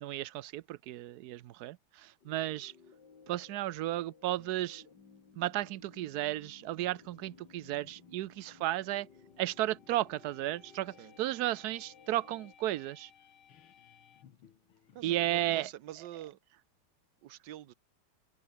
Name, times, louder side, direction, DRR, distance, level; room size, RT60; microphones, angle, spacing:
voice 1, 0.0-2.7 3.3-4.8 5.4-9.1 9.4-13.1 15.0-15.7, right 15 dB, 80° right, 0.8 m, -34 dB
sound 1, 2.2-12.6, left 5 dB, 50° left, 3.2 m, -59 dB
sound 2, 6.6-15.8, left 9 dB, 70° left, 2.3 m, -61 dB
voice 2, 14.9-16.4 17.2-17.7, right 13 dB, 65° right, 1.3 m, -47 dB
open air
omnidirectional pair, 2.4 m